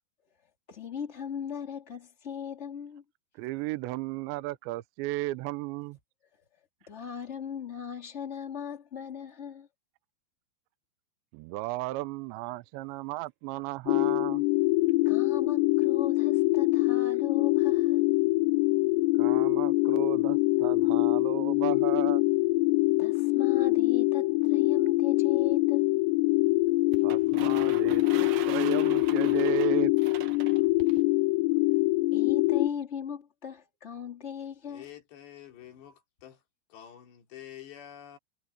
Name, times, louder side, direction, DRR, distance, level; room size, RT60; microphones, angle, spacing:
voice 1, 0.7-3.0 6.9-9.7 15.0-18.0 23.0-25.9 32.1-34.8, left 7 dB, 40° left, 0.9 m, -38 dB
voice 2, 3.4-6.0 11.3-14.4 19.2-22.2 27.0-29.9, right 18 dB, 80° right, 2.9 m, -34 dB
sound 1, 13.9-32.7, left 21 dB, 85° left, 2.6 m, -24 dB
sound 2, 26.9-31.0, right 11 dB, 60° right, 2.8 m, -43 dB
voice 3, 34.6-36.4 36.7-38.2, left 11 dB, 65° left, 4.9 m, -48 dB
omnidirectional pair, 5.3 m